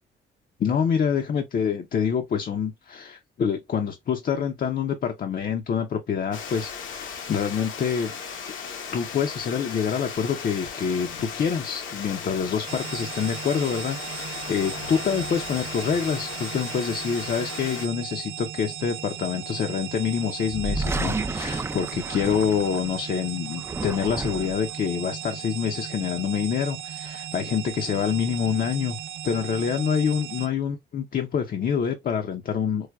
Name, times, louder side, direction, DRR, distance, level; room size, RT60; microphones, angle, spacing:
voice 1, 0.6-8.1 8.9-29.0 29.2-32.9, left 7 dB, 45° left, 0.5 m, -26 dB
Water, 6.3-17.9, left 6 dB, 80° left, 0.9 m, -36 dB
sound 1, 12.7-30.5, right 10 dB, 85° right, 0.5 m, -37 dB
sound 2, 20.5-23.0 23.5-24.7, right 2 dB, 15° right, 0.3 m, -31 dB
4.6 x 2.1 x 2.3 m
cardioid pair, 90°, 20 cm